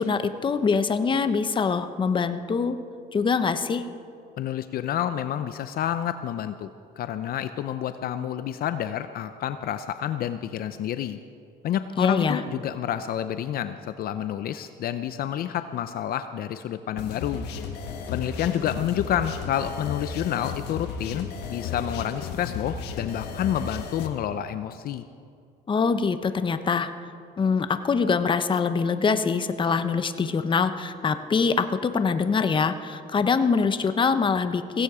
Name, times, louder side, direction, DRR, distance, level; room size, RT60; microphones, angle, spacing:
voice 1, 0.0-2.8 3.1-3.8 12.0-12.4 25.7-26.9 27.4-34.8, left 5 dB, 30° left, 10 dB, 0.9 m, -24 dB
voice 2, 4.4-6.7 7.0-11.2 11.6-17.5 18.1-25.0, left 10 dB, 60° left, 11 dB, 0.6 m, -29 dB
sound 1, 17.0-24.1, left 6 dB, 85° left, 1.5 m, -34 dB
16.5 x 16.5 x 4.9 m, 2.3 s
cardioid pair, 110°, 17 cm